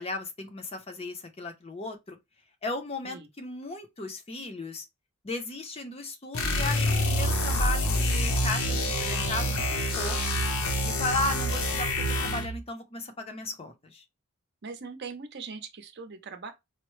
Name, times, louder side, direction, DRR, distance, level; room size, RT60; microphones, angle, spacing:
voice 1, 0.0-2.2 2.6-4.9 5.2-10.2 10.8-11.9 12.2-14.0, left 2 dB, 25° left, 0.5 m, -35 dB
sound 1, 6.3-12.6, left 1 dB, 75° left, 0.8 m, -27 dB
voice 2, 14.6-16.5, right 4 dB, 50° right, 0.6 m, -40 dB
4.3 x 2.0 x 3.0 m
head